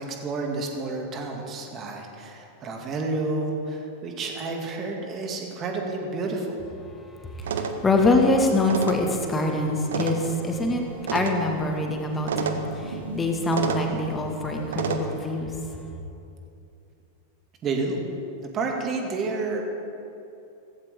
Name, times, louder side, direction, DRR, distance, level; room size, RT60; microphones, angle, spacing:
voice 1, 0.0-6.6 17.6-18.0 18.4-19.6, right 3 dB, 30° right, 1 dB, 2.4 m, -30 dB
voice 2, 7.3-10.8 11.1-15.5, left 2 dB, 15° left, 2 dB, 2.0 m, -24 dB
sound 1, 7.4-15.0, right 5 dB, 60° right, 1.1 m, -32 dB
16.5 x 15.5 x 3.8 m, 2.7 s
figure-of-eight pair, 90°, 0 cm